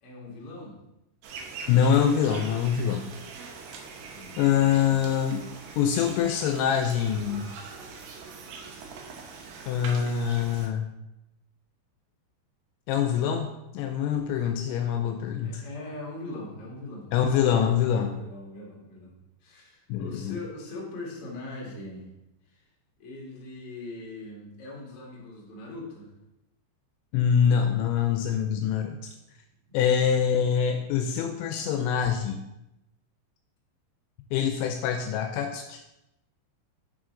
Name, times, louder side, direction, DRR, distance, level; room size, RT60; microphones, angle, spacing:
voice 1, 0.0-0.8 4.0-5.1 15.4-17.1 18.0-19.1 19.4-22.1 22.5-22.7 23.0-26.1, left 2 dB, 55° left, -4 dB, 1.6 m, -41 dB
sound 1, 1.2-10.7, right 4 dB, 75° right, 2.6 m, -43 dB
voice 2, 1.7-3.0 4.4-5.4 5.8-7.5 9.7-10.9 12.9-15.6 17.1-18.1 19.9-20.4 27.1-29.1 29.7-32.4 34.3-35.8, left 8 dB, 85° left, 4 dB, 2.7 m, -25 dB
6.7 x 6.1 x 3.7 m, 0.90 s
omnidirectional pair, 5.3 m